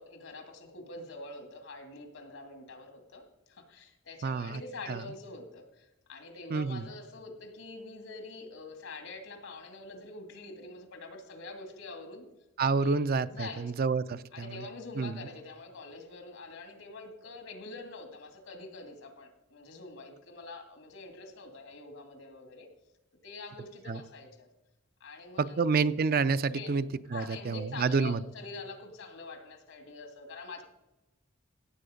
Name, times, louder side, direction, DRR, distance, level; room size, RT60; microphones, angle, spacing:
voice 1, 0.0-12.3 12.8-13.0 13.3-13.6 14.3-22.7 23.2-24.5 25.0-25.6 26.5-26.8 27.1-30.6, left 3 dB, 80° left, 6 dB, 2.4 m, -45 dB
voice 2, 4.2-4.6 4.9-5.0 6.5-6.9 12.6-14.7 15.0-15.2 23.9-24.0 25.4-26.8 27.1-28.2, right 4 dB, 45° right, 13 dB, 0.4 m, -29 dB
16.0 x 7.6 x 5.1 m, 0.99 s
head